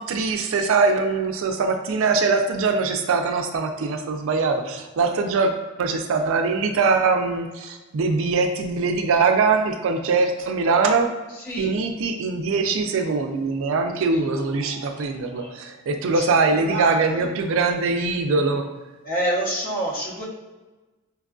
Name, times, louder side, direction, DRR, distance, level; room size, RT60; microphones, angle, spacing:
voice 1, 0.0-5.5 5.8-11.1 11.6-18.6, right 4 dB, 65° right, 6 dB, 0.4 m, -22 dB
voice 2, 14.1-15.5 16.2-17.3 19.0-20.2, right 1 dB, 45° left, -3 dB, 0.9 m, -29 dB
4.4 x 2.4 x 2.3 m, 1.2 s
head